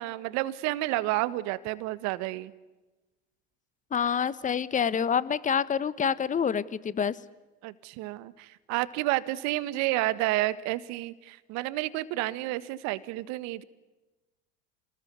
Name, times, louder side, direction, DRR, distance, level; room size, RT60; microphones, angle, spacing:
voice 1, 0.0-2.5 7.6-13.6, right 17 dB, 60° right, 15 dB, 1.7 m, -30 dB
voice 2, 3.9-7.2, left 7 dB, 25° left, 17 dB, 1.3 m, -27 dB
28.5 x 20.0 x 9.6 m, 1.1 s
hypercardioid pair, 85°, 31 cm